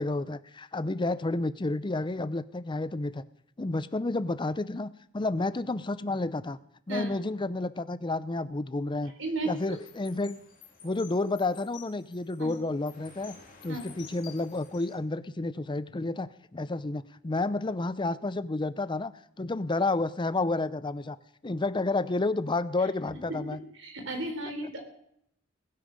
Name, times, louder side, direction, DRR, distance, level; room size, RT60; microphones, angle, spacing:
voice 1, 0.0-3.2 3.6-6.6 6.9-9.1 9.4-10.4 10.8-13.4 13.6-19.1 19.4-21.2 21.4-23.6, left 2 dB, 25° left, 15 dB, 0.6 m, -30 dB
sound 1, 9.5-15.0, left 6 dB, 45° left, 3.3 m, -52 dB
voice 2, 23.7-24.8, right 2 dB, 65° right, 5 dB, 3.7 m, -34 dB
21.0 x 9.1 x 5.2 m, 0.72 s
head